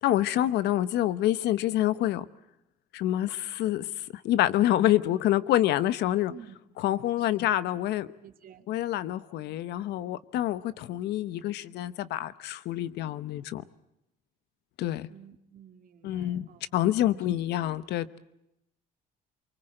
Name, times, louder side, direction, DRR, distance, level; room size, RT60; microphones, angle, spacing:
voice 1, 0.0-2.2 2.9-3.9 4.1-6.3 6.8-8.1 8.7-13.6 14.8-15.1 16.0-18.2, left 13 dB, 80° left, 1.0 m, -27 dB
voice 2, 8.2-8.7 15.1-16.6 17.1-17.3, right 9 dB, 55° right, 2.5 m, -51 dB
24.0 x 23.5 x 7.8 m
cardioid pair, 110°, 17 cm